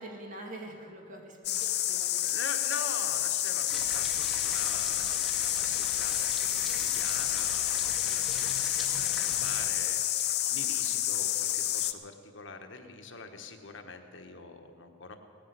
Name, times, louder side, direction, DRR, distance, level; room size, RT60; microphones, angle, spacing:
voice 1, 0.0-2.2 3.6-3.8, right 1 dB, 40° right, 1 dB, 2.5 m, -45 dB
sound 1, 1.4-11.9, left 12 dB, 55° left, 0.7 m, -29 dB
voice 2, 2.2-15.2, left 4 dB, 70° left, 6 dB, 1.3 m, -44 dB
sound 2, 3.7-9.7, left 1 dB, ahead, 1.9 m, -41 dB
17.0 x 10.0 x 8.2 m, 2.3 s
head